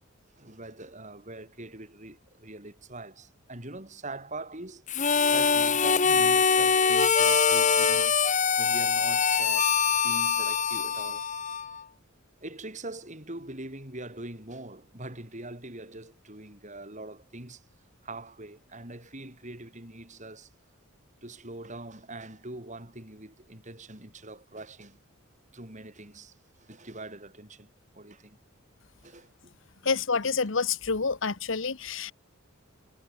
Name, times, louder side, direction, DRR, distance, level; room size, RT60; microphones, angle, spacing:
voice 1, 0.4-4.8 5.3-8.1 8.6-9.7 10.0-11.3 12.4-17.6 18.0-20.5 21.2-25.0 25.5-27.7 27.9-28.4 29.0-29.5, right 2 dB, 35° right, 5.9 m, -43 dB
Harmonica, 4.9-11.8, left 6 dB, 35° left, 1.9 m, -23 dB
voice 2, 29.8-32.1, left 4 dB, 60° left, 1.1 m, -28 dB
head